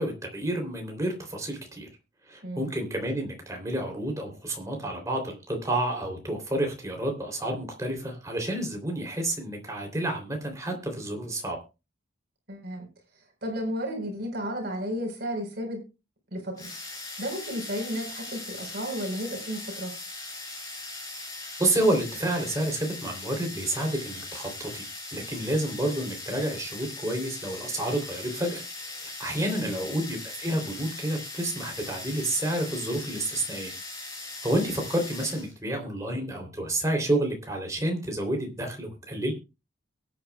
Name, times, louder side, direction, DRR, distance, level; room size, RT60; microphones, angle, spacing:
voice 1, 0.0-1.9 2.3-11.6 21.6-24.8 25.1-28.6 29.0-33.7 34.4-39.3, right 1 dB, 15° right, 3 dB, 3.3 m, -29 dB
voice 2, 12.5-12.9 13.1-15.8 16.3-19.9 29.4-29.8, equal, 55° right, 2 dB, 4.4 m, -33 dB
sound 1, 16.6-35.5, left 2 dB, 20° left, 6.2 m, -40 dB
22.5 x 8.9 x 2.3 m, 0.29 s
head